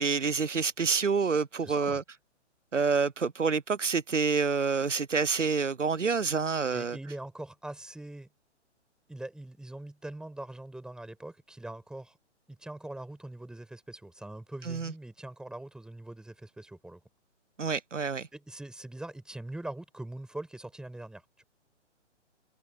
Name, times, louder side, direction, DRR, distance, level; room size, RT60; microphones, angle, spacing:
voice 1, 0.0-2.0 2.7-7.0 14.7-14.9 17.6-18.3, right 5 dB, 85° right, 0.7 m, -27 dB
voice 2, 1.6-2.0 6.7-8.3 9.1-12.2 12.5-17.0 18.3-21.4, right 1 dB, ahead, 5.9 m, -42 dB
open air
figure-of-eight pair, 130°, 36 cm